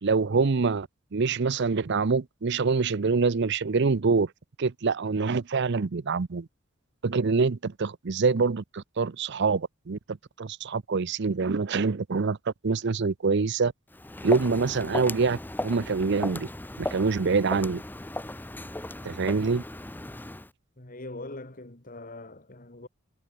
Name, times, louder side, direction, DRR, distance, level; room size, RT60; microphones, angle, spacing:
voice 1, 0.0-4.3 4.6-6.5 7.0-10.0 10.4-12.4 12.6-13.7 14.2-16.5 16.8-17.8 19.0-19.6, right 4 dB, 55° right, 0.6 m, -25 dB
Walk footsteps, 13.9-20.5, left 1 dB, 10° left, 0.8 m, -36 dB
voice 2, 20.8-22.9, left 2 dB, 40° left, 2.8 m, -42 dB
head